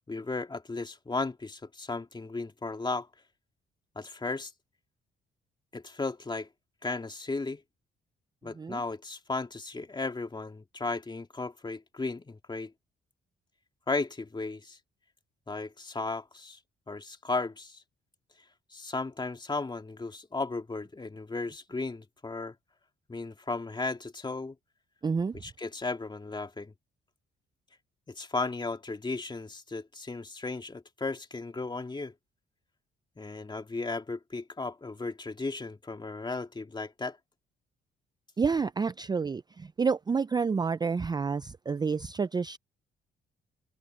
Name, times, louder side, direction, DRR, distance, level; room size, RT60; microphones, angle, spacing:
voice 1, 0.1-3.1 4.0-4.5 5.7-6.5 6.8-7.6 8.4-12.7 13.9-14.8 15.5-16.6 16.9-17.8 18.7-22.5 23.1-24.6 25.4-26.7 28.1-32.1 33.2-37.2, left 3 dB, 20° left, 2.5 m, -35 dB
voice 2, 25.0-25.4 38.4-42.6, right 5 dB, 20° right, 0.4 m, -29 dB
open air
cardioid pair, 90°, 20 cm